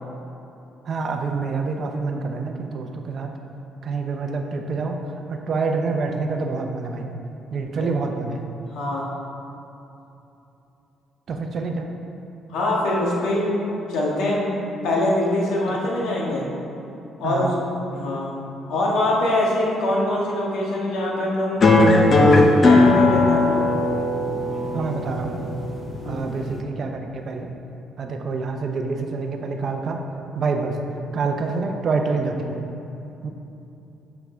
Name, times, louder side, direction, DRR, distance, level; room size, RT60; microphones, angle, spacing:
voice 1, 0.9-3.3 3.8-5.0 5.3-7.1 7.5-8.4 11.3-11.9 17.2-17.6 24.7-25.4 26.0-27.5 28.0-30.0 30.3-30.8 31.1-32.6 33.2-33.3, right 4 dB, 45° right, 3 dB, 0.6 m, -27 dB
voice 2, 8.7-9.1 12.5-16.5 17.2-17.5 17.9-18.4 18.7-23.6 26.0-26.3, left 1 dB, 85° left, -4 dB, 1.5 m, -24 dB
sound 1, 21.6-26.6, left 2 dB, 35° left, 0.6 m, -18 dB
6.2 x 5.8 x 4.4 m, 2.9 s
cardioid pair, 135°, 0 cm